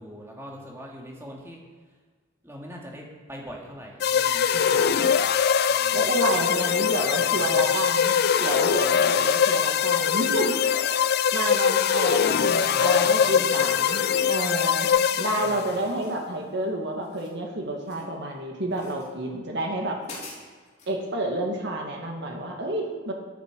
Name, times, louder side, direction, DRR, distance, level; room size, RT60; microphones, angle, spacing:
voice 1, 0.0-1.6 2.4-5.2 5.7-6.4 7.1-7.7 12.2-13.9 15.4-15.9, equal, 15° right, -2 dB, 2.2 m, -42 dB
sound 1, 4.0-15.8, left 7 dB, 50° left, 0.4 m, -22 dB
voice 2, 4.5-5.1 5.9-10.5 11.3-14.9 15.2-20.0 20.9-23.1, right 1 dB, 55° right, 1 dB, 2.0 m, -29 dB
sound 2, 16.0-16.7 16.9-18.2 18.7-19.1 19.6-19.7 20.0-21.0, left 2 dB, 35° left, 3.7 m, -46 dB
14.0 x 9.9 x 4.8 m, 1.5 s
head